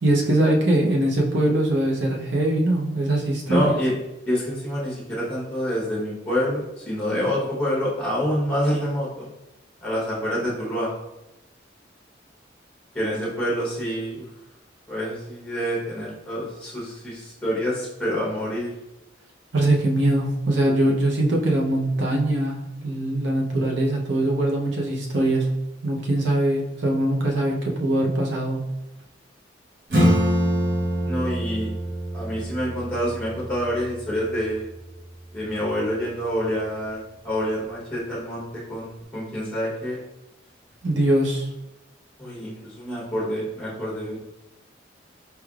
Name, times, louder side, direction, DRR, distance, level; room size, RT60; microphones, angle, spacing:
voice 1, 0.0-3.8 19.5-25.5 25.8-28.6 40.8-41.5, right 1 dB, 85° right, -1 dB, 0.7 m, -22 dB
voice 2, 3.4-3.9 4.3-9.3 9.8-10.9 12.9-14.2 14.9-18.7 31.0-31.7 32.1-34.7 35.3-40.0 42.2-44.2, equal, 5° left, -5 dB, 0.9 m, -27 dB
Acoustic guitar / Strum, 29.9-35.1, equal, 55° right, 1.1 m, -25 dB
4.6 x 3.2 x 2.3 m, 0.94 s
head